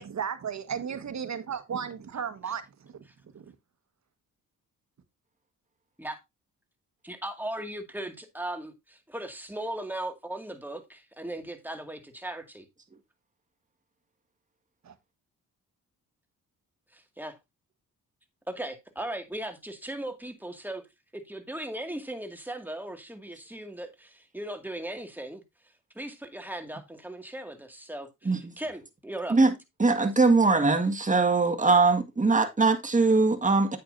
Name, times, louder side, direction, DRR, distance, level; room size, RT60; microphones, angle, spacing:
voice 1, 0.0-2.6 3.3-3.5 14.8-14.9, right 7 dB, 55° right, 1.5 m, -34 dB
voice 2, 7.0-12.6 16.9-17.4 18.5-20.8 21.1-25.4 26.0-29.4, right 1 dB, 5° right, 2.1 m, -38 dB
voice 3, 29.8-33.8, right 3 dB, 20° right, 1.8 m, -21 dB
8.9 x 8.5 x 2.7 m
cardioid pair, 75°, 33 cm